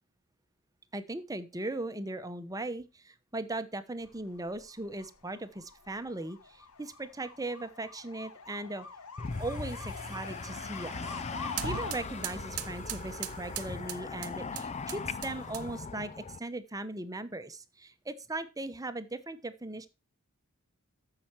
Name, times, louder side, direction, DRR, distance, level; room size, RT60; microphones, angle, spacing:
voice 1, 0.9-8.9 9.4-11.1 11.6-16.1 16.4-19.9, right 2 dB, 15° right, 11 dB, 0.9 m, -38 dB
sound 1, 4.0-11.9, left 4 dB, 85° left, 1.3 m, -45 dB
sound 2, 9.2-16.4, left 4 dB, 30° left, 0.4 m, -40 dB
sound 3, 9.2-15.9, right 8 dB, 85° right, 0.9 m, -42 dB
14.0 x 5.9 x 4.5 m, 0.30 s
head